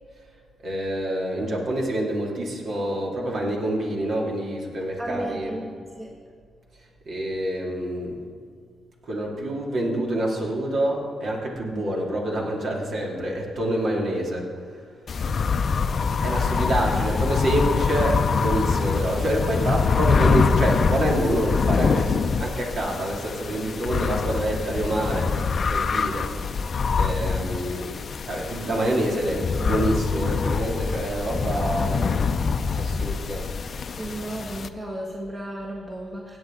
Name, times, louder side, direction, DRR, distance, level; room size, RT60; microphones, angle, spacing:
voice 1, 0.6-5.6 7.1-8.2 9.1-14.5 16.2-25.3 25.7-26.3 26.9-28.0 28.2-32.2 32.7-33.5, right 1 dB, 60° right, -2 dB, 2.6 m, -27 dB
voice 2, 5.0-6.1 16.5-17.0 34.0-36.4, right 1 dB, 30° right, -2 dB, 1.6 m, -34 dB
sound 1, 15.1-34.7, left 5 dB, 55° left, 0.6 m, -24 dB
17.0 x 9.2 x 3.9 m, 2.1 s
supercardioid pair, 55°, 0 cm